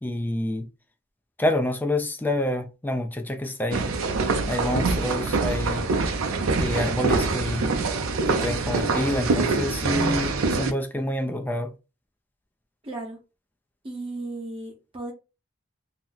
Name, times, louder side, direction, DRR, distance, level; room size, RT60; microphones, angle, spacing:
voice 1, 0.0-0.7 1.4-3.9 4.5-5.9 6.6-7.7 8.3-11.7, left 1 dB, 10° left, 0.3 m, -27 dB
sound 1, 3.7-10.7, right 3 dB, 85° right, 0.5 m, -25 dB
voice 2, 12.8-13.2 13.8-15.1, right 2 dB, 25° right, 0.6 m, -35 dB
2.7 x 2.0 x 3.8 m
head